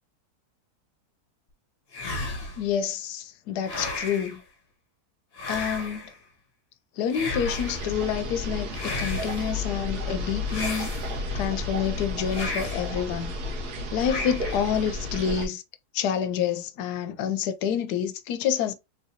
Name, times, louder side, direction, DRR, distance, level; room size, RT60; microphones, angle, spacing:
sound 1, 1.9-2.7 3.6-4.4 5.3-6.2 7.1-7.9 8.7-9.5 10.5-11.4 12.3-13.0 14.0-14.7, left 2 dB, 45° left, 1.1 m, -34 dB
voice 1, 2.6-4.4 5.5-6.0 7.0-10.9 11.3-13.3 13.9-15.6 15.9-18.7, left 8 dB, 85° left, 1.1 m, -28 dB
sound 2, 7.5-15.5, left 1 dB, 85° right, 1.4 m, -32 dB
3.7 x 2.7 x 2.7 m
omnidirectional pair, 1.7 m